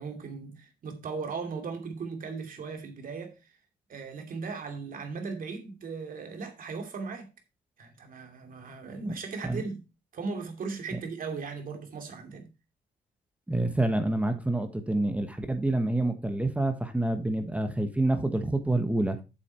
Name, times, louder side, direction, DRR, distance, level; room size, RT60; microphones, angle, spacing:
voice 1, 0.0-3.6 3.9-7.3 7.8-9.8 10.1-12.5, right 4 dB, 55° right, 2.6 m, -37 dB
voice 2, 13.5-19.2, right 2 dB, 10° right, 1.3 m, -27 dB
8.3 x 7.1 x 4.4 m
cardioid pair, 110°, 17 cm